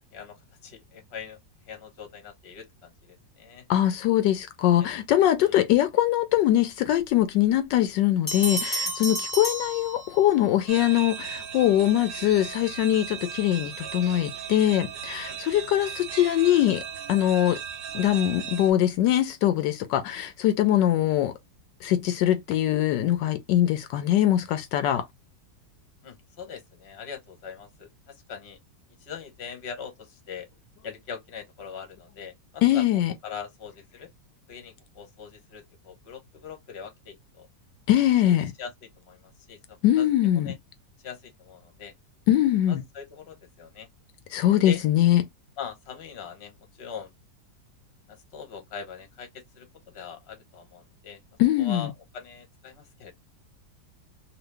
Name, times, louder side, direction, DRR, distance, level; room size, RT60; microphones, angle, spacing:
voice 1, 0.1-1.4 1.7-3.6 4.8-4.9 5.4-5.5 9.1-9.2 15.3-15.4 26.0-28.6 29.0-30.5 30.8-32.8 33.2-34.1 34.5-37.5 38.6-40.1 40.3-40.6 41.0-41.9 42.7-43.9 44.6-44.8 45.6-47.1 48.1-51.2 51.6-53.1, left 7 dB, 45° left, 1.1 m, -41 dB
voice 2, 3.7-16.8 17.1-17.6 17.9-21.3 21.8-25.0 32.6-33.1 37.9-38.5 39.8-40.5 42.3-42.8 44.3-45.2 51.4-51.9, left 12 dB, 80° left, 1.2 m, -22 dB
Bell, 8.3-10.5, right 1 dB, 20° left, 0.5 m, -31 dB
sound 1, 10.7-18.7, right 8 dB, 85° right, 1.4 m, -37 dB
3.0 x 2.7 x 3.1 m
omnidirectional pair, 1.9 m